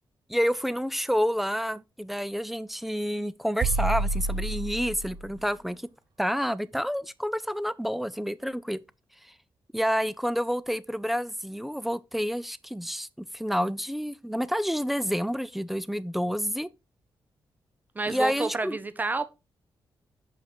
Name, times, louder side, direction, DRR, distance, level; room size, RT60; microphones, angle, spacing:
voice 1, 0.3-5.9 6.2-8.8 9.7-16.7 18.1-18.8, equal, ahead, 0.4 m, -29 dB
sound 1, 3.6-5.4, right 3 dB, 60° right, 0.9 m, -29 dB
voice 2, 17.9-19.3, right 3 dB, 20° right, 0.8 m, -29 dB
6.5 x 5.7 x 4.3 m
wide cardioid pair, 125°, 9 cm